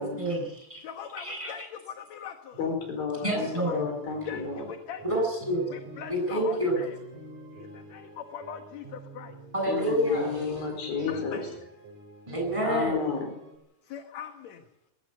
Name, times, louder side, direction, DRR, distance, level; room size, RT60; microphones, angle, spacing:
voice 1, 0.0-0.8 1.2-1.7 3.2-3.9 5.0-5.7 6.1-6.8 9.5-10.4 12.3-13.1, equal, 10° right, 1 dB, 7.9 m, -28 dB
voice 2, 0.8-2.6 3.2-3.8 4.3-5.0 5.7-7.0 7.5-9.4 11.1-11.4 13.8-14.6, left 8 dB, 60° left, 6 dB, 2.3 m, -41 dB
sound 1, 2.5-13.6, right 2 dB, 55° right, 7.2 m, -47 dB
voice 3, 2.6-4.7 9.7-11.4 12.6-13.3, left 5 dB, 80° left, 5 dB, 6.4 m, -32 dB
20.5 x 17.5 x 8.0 m, 0.83 s
omnidirectional pair, 4.1 m